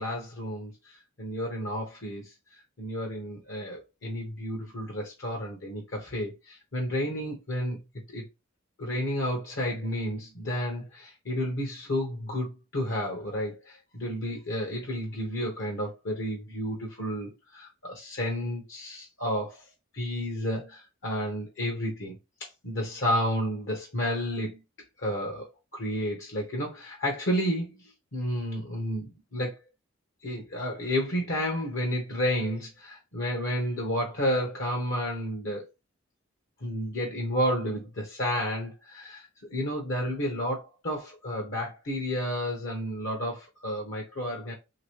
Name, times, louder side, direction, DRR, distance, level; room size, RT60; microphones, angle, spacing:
voice 1, 0.0-2.3 2.8-7.8 8.1-8.3 8.8-19.7 19.9-22.1 22.4-24.6 25.0-29.6 30.2-35.6 36.6-44.5, equal, 60° left, 0.9 m, -31 dB
3.1 x 2.9 x 3.0 m
head